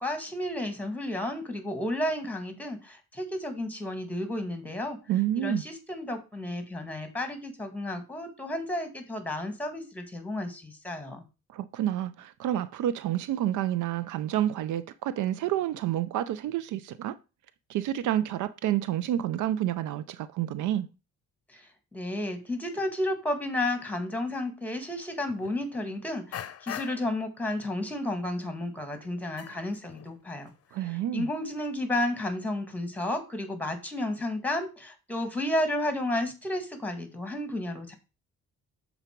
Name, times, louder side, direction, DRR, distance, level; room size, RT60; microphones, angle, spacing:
voice 1, 0.0-5.0 5.4-11.2 21.5-30.5 31.1-38.0, left 1 dB, 5° left, 1.8 m, -32 dB
voice 2, 5.1-5.6 11.5-17.2 17.7-20.9 30.7-31.3, right 12 dB, 80° right, 0.5 m, -29 dB
sound 1, 24.7-24.8 25.3-25.8 26.3-27.2 27.6-28.0 28.3-28.4 28.8-30.2 30.5-30.8, left 10 dB, 55° left, 0.6 m, -42 dB
6.8 x 4.0 x 4.5 m
cardioid pair, 90°, 30 cm